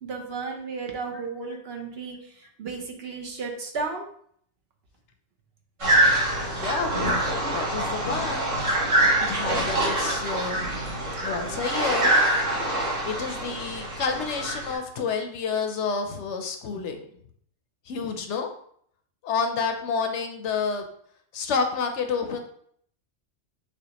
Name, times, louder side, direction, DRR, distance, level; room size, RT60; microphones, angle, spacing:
voice 1, 0.0-4.1, right 4 dB, 60° right, 2 dB, 0.9 m, -34 dB
sound 1, 5.8-14.7, right 1 dB, 75° right, 2.2 m, -25 dB
voice 2, 6.3-7.2 7.5-8.5 9.2-10.6 11.2-12.1 13.0-17.1 17.9-18.5 19.2-20.9 21.3-22.4, left 5 dB, 70° left, 5 dB, 0.9 m, -29 dB
6.4 x 2.4 x 2.9 m, 0.64 s
omnidirectional pair, 1.3 m